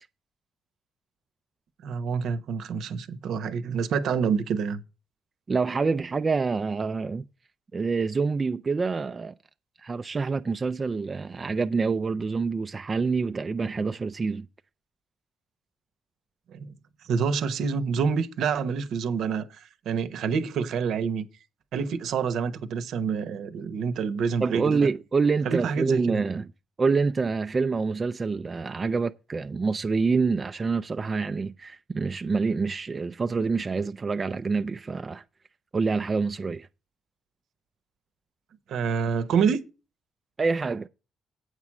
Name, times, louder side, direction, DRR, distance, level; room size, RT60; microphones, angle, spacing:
voice 1, 1.8-4.8 16.5-16.6 17.0-21.3 21.7-24.8 25.4-26.2 38.7-39.6, right 6 dB, 75° right, 0.9 m, -27 dB
voice 2, 5.5-7.2 7.7-9.3 9.8-14.5 24.4-26.5 26.8-35.2 35.7-36.7 40.4-40.9, right 4 dB, 30° right, 0.4 m, -26 dB
8.2 x 4.8 x 7.3 m
cardioid pair, 90°, 0 cm